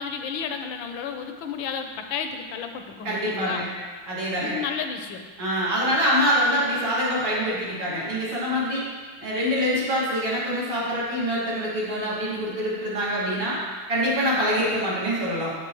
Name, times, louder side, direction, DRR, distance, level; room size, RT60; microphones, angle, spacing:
voice 1, 0.0-3.6 4.4-5.2, left 6 dB, 85° left, 6 dB, 1.4 m, -32 dB
voice 2, 3.0-3.7 4.1-4.6 5.4-8.8 9.2-13.6 13.9-15.5, equal, 85° right, -8 dB, 3.0 m, -25 dB
8.1 x 8.0 x 3.0 m, 1.5 s
omnidirectional pair, 2.1 m